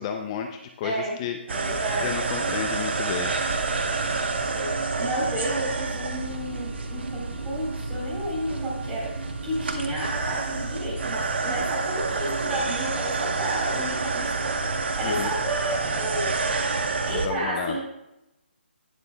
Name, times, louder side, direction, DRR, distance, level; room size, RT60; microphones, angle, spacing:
voice 1, 0.0-1.4 2.0-3.4 15.0-15.3 17.0-17.8, left 7 dB, 30° left, 5 dB, 0.6 m, -32 dB
voice 2, 0.8-1.2 1.5-2.2 4.5-16.3 17.1-17.8, right 1 dB, 15° right, -5 dB, 3.9 m, -31 dB
sound 1, 1.5-17.3, right 3 dB, 65° right, 1.1 m, -28 dB
18.5 x 6.8 x 2.3 m, 0.88 s
figure-of-eight pair, 150°, 6 cm